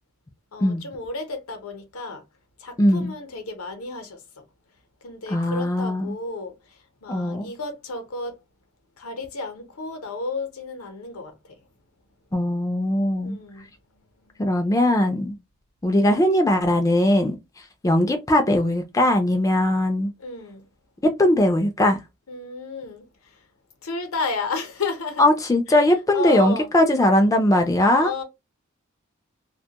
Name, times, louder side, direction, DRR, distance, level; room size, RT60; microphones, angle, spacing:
voice 1, 0.5-2.2 2.6-4.4 5.0-8.4 9.0-11.5 13.2-14.3 20.2-20.6 22.3-23.4 23.8-25.2 25.7-26.7 28.0-28.2, left 4 dB, 80° left, 0.7 m, -33 dB
voice 2, 2.8-3.1 5.3-6.2 7.1-7.5 12.3-13.4 14.4-15.4 15.8-17.4 17.8-20.1 21.2-22.0 25.2-28.1, left 1 dB, 15° left, 0.4 m, -20 dB
2.2 x 2.1 x 2.8 m
head